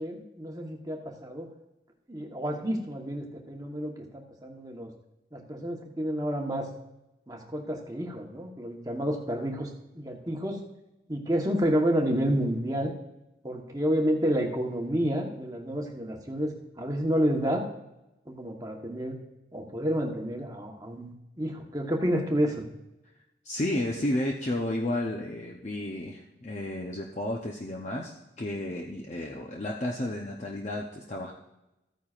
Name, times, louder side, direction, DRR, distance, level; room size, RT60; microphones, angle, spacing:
voice 1, 0.0-1.5 2.1-4.9 5.3-6.7 7.3-9.7 9.9-10.6 11.1-12.9 13.4-17.7 18.3-19.2 19.5-22.6, equal, 20° right, 1 dB, 1.1 m, -30 dB
voice 2, 23.4-31.3, left 1 dB, 40° left, -1 dB, 0.7 m, -32 dB
14.0 x 9.3 x 2.5 m, 0.94 s
head